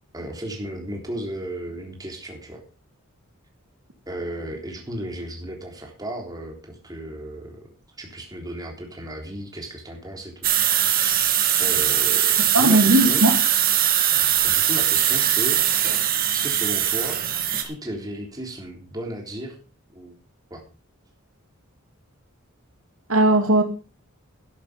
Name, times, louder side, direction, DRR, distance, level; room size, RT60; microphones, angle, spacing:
voice 1, 0.1-2.6 4.1-7.6 8.0-10.5 11.6-13.3 14.4-15.8 16.3-17.2 17.6-19.6 19.9-20.1 20.5-20.6, right 1 dB, 20° right, 3.6 m, -34 dB
sound 1, 10.4-17.6, right 10 dB, 45° right, 2.2 m, -21 dB
voice 2, 12.5-13.3 23.1-23.6, right 1 dB, 80° right, 2.2 m, -17 dB
13.0 x 10.5 x 5.2 m
head